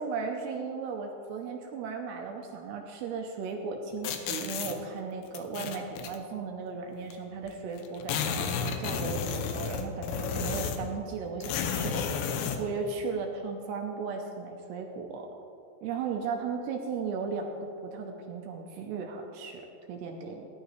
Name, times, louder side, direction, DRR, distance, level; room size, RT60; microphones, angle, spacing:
voice 1, 0.0-12.1 12.6-15.3 15.8-20.5, right 5 dB, 80° right, 2 dB, 2.7 m, -36 dB
sound 1, 4.0-4.8 5.3-6.2 7.1-7.2 7.4-7.5 7.8-10.9 11.4-12.6, left 6 dB, 75° left, 2.8 m, -32 dB
18.5 x 11.0 x 3.2 m, 2.6 s
omnidirectional pair, 5.3 m